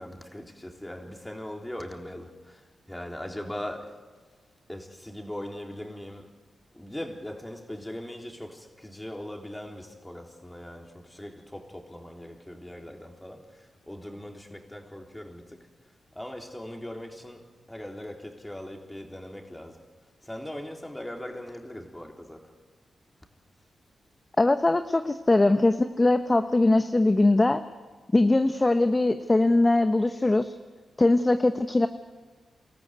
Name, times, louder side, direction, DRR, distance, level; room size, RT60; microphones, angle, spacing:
voice 1, 0.0-4.0 4.7-6.3 6.7-15.7 16.1-19.8 20.2-22.5, left 1 dB, 10° left, 3.8 m, -40 dB
voice 2, 24.4-27.6 28.1-30.5 31.0-31.9, left 2 dB, 25° left, 1.0 m, -21 dB
26.5 x 14.0 x 9.4 m
supercardioid pair, 50°, 0 cm